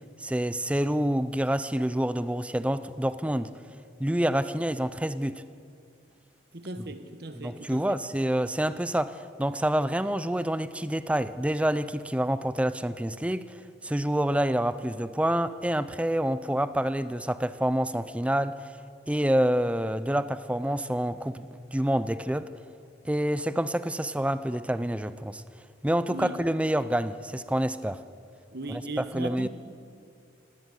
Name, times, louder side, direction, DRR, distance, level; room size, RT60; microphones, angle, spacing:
voice 1, 0.2-3.5 4.0-5.4 7.4-18.7 19.1-22.5 23.0-25.4 25.8-28.0 28.7-28.8 29.1-29.5, right 1 dB, 5° right, 0.5 m, -27 dB
voice 2, 6.5-8.0 26.1-26.4 28.5-29.5, right 2 dB, 60° right, 1.3 m, -38 dB
18.5 x 17.5 x 8.1 m
head